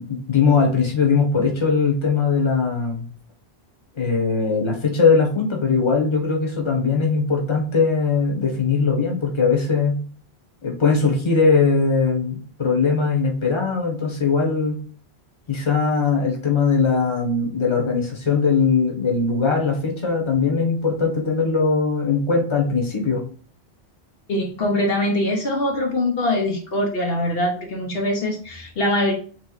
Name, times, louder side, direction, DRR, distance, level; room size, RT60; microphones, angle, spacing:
voice 1, 0.0-3.1 4.0-10.0 10.6-14.8 15.5-23.2, left 5 dB, 30° left, 1 dB, 1.0 m, -20 dB
voice 2, 24.3-29.1, left 1 dB, 65° left, 1 dB, 1.0 m, -23 dB
3.6 x 3.1 x 3.9 m, 0.43 s
omnidirectional pair, 1.1 m